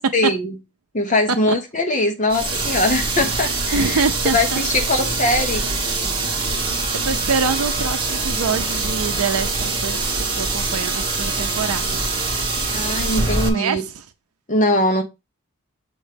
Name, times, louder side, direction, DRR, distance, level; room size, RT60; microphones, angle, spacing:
voice 1, 0.1-0.5 0.9-4.0 4.3-5.7 12.7-13.8 14.5-15.0, left 1 dB, 35° left, 0.9 m, -21 dB
sound 1, 2.3-13.5, right 3 dB, 25° right, 1.4 m, -24 dB
voice 2, 3.7-4.6 7.0-10.1 10.3-12.0 13.5-14.0, right 5 dB, 85° right, 0.6 m, -25 dB
Bowed string instrument, 6.4-13.6, left 3 dB, 80° left, 4.5 m, -40 dB
7.2 x 3.1 x 5.1 m
head